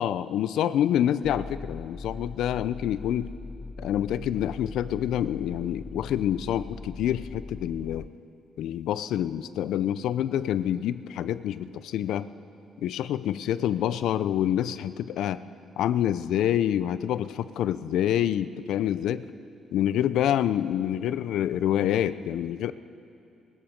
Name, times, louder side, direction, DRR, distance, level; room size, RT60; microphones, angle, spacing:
voice 1, 0.0-3.3 3.8-8.1 8.6-12.3 12.8-15.4 15.8-19.3 19.7-22.7, left 11 dB, 80° left, 15 dB, 0.5 m, -27 dB
sound 1, 1.2-8.1, left 3 dB, 25° left, 0.3 m, -40 dB
19.0 x 13.5 x 5.2 m, 2.5 s
cardioid pair, 90°, 0 cm